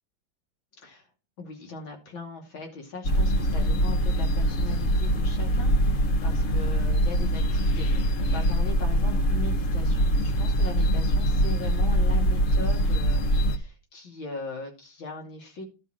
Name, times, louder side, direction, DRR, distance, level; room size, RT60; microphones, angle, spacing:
voice 1, 1.4-15.6, left 3 dB, 85° left, 2 dB, 3.5 m, -40 dB
sound 1, 3.0-13.6, equal, 55° left, 1.0 m, -23 dB
12.0 x 4.6 x 6.4 m, 0.31 s
omnidirectional pair, 2.1 m